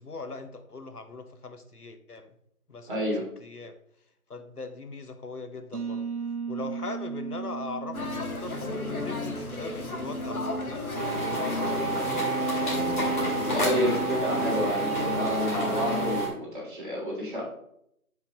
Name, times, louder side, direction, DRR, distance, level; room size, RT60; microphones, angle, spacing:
voice 1, 0.0-2.3 2.7-3.0 3.4-3.7 4.3-6.0 6.5-10.8 11.4-12.8, left 3 dB, 85° left, 8 dB, 1.2 m, -39 dB
voice 2, 2.9-3.3 13.5-17.4, equal, 35° right, -4 dB, 3.0 m, -29 dB
sound 1, 5.7-11.3, right 6 dB, 80° right, 1.1 m, -37 dB
sound 2, 7.9-16.2, left 2 dB, 70° left, 1.8 m, -32 dB
sound 3, 10.9-16.3, right 3 dB, 35° left, 2.4 m, -29 dB
11.0 x 5.6 x 3.0 m, 0.73 s
figure-of-eight pair, 165°, 45 cm